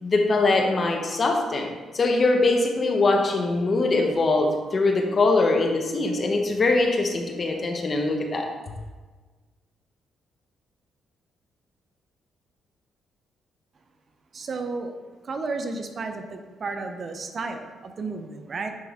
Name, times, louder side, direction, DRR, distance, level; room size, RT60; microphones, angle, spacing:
voice 1, 0.0-8.5, left 3 dB, 40° left, 3 dB, 1.0 m, -22 dB
voice 2, 14.3-15.0 15.2-18.7, right 3 dB, 45° right, 6 dB, 0.6 m, -32 dB
9.6 x 3.4 x 3.6 m, 1.3 s
cardioid pair, 90°, 0 cm